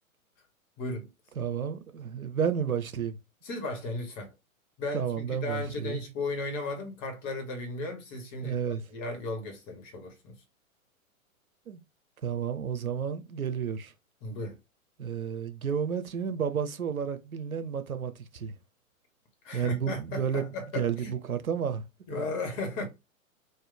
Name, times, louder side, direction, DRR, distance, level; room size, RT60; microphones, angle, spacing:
voice 1, 0.8-1.1 3.4-4.3 4.8-10.3 14.2-14.6 19.4-21.2 22.1-22.9, left 2 dB, 30° left, 1.4 m, -35 dB
voice 2, 1.4-3.2 4.9-6.0 8.4-8.8 11.7-11.8 12.2-13.9 15.0-18.5 19.5-20.5 20.7-21.8 22.1-22.2, right 7 dB, 85° right, 0.8 m, -31 dB
3.2 x 2.5 x 3.9 m
figure-of-eight pair, 110°, 42 cm